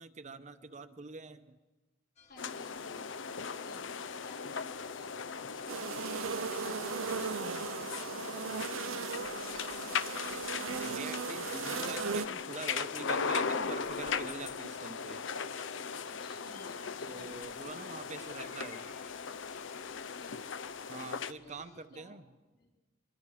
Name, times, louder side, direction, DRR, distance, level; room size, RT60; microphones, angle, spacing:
voice 1, 0.0-1.6 10.8-15.2 17.1-18.8 20.9-22.2, right 3 dB, 35° right, 8 dB, 0.8 m, -45 dB
sound 1, 2.2-21.9, left 4 dB, 35° left, 2.2 m, -62 dB
voice 2, 2.3-9.9 16.0-17.3 18.2-18.5 19.9-20.5 21.4-22.2 22.6-22.7, left 2 dB, 50° left, -1 dB, 4.0 m, -56 dB
sound 2, 2.4-21.3, left 5 dB, 70° left, 0.6 m, -38 dB
sound 3, 5.7-12.3, right 6 dB, 85° right, 0.6 m, -37 dB
24.5 x 22.5 x 4.9 m, 1.2 s
head